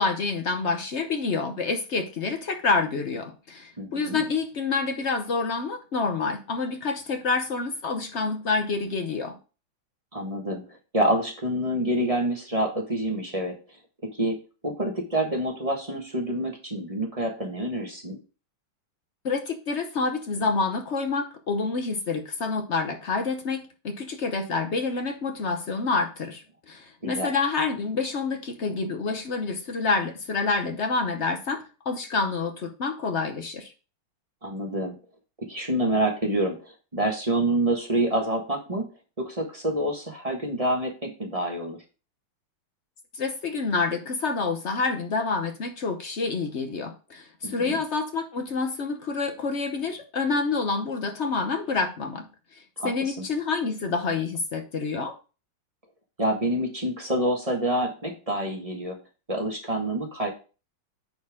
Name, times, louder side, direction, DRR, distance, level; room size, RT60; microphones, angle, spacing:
voice 1, 0.0-9.4 19.2-33.7 43.1-52.3 52.5-55.2, left 4 dB, 55° left, 6 dB, 0.8 m, -28 dB
voice 2, 3.8-4.2 10.1-10.6 10.9-13.6 14.2-14.4 14.6-18.2 27.0-27.3 34.4-35.0 35.4-38.8 39.2-41.8 47.4-47.7 52.8-53.3 56.2-59.0 59.3-60.3, right 1 dB, 20° right, 1 dB, 1.2 m, -27 dB
9.5 x 4.4 x 3.6 m, 0.33 s
omnidirectional pair, 2.3 m